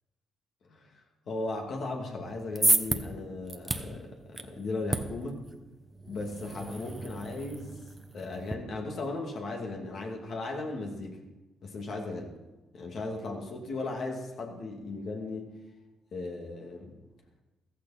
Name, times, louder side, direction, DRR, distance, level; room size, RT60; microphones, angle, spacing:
voice 1, 0.6-1.0 1.3-5.5 6.1-7.8 8.1-11.2 11.6-12.4 12.7-15.5 16.1-16.9, left 2 dB, 60° left, 1 dB, 2.4 m, -36 dB
sound 1, 2.2-8.5, right 2 dB, 15° right, 1.0 m, -33 dB
15.0 x 14.0 x 4.3 m, 1.1 s
cardioid pair, 90°, 0 cm